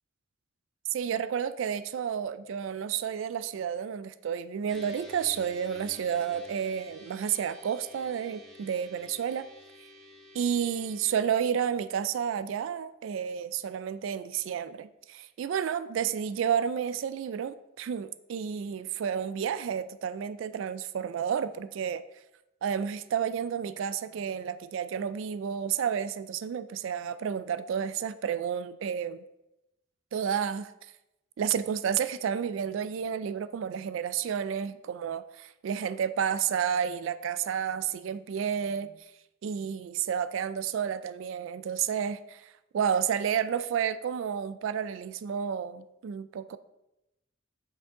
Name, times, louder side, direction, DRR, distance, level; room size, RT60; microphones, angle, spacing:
voice 1, 0.9-9.5 9.8-9.9 10.3-22.0 22.6-29.2 30.1-30.9 31.4-39.1 39.4-46.6, right 8 dB, 75° right, 14 dB, 0.3 m, -31 dB
sound 1, 4.7-11.3, left 1 dB, ahead, 1.4 m, -51 dB
7.9 x 5.8 x 3.7 m, 0.93 s
head